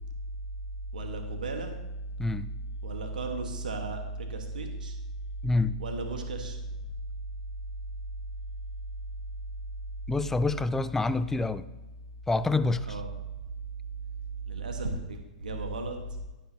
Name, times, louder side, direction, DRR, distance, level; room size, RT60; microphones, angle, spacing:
voice 1, 0.9-1.8 2.8-5.0 5.8-6.6 12.9-13.1 14.5-16.2, right 2 dB, 85° right, 3 dB, 1.5 m, -34 dB
voice 2, 5.4-5.8 10.1-11.7 12.3-13.0, left 3 dB, 10° left, 14 dB, 0.4 m, -27 dB
12.5 x 10.0 x 2.9 m, 1.1 s
hypercardioid pair, 120°, 4 cm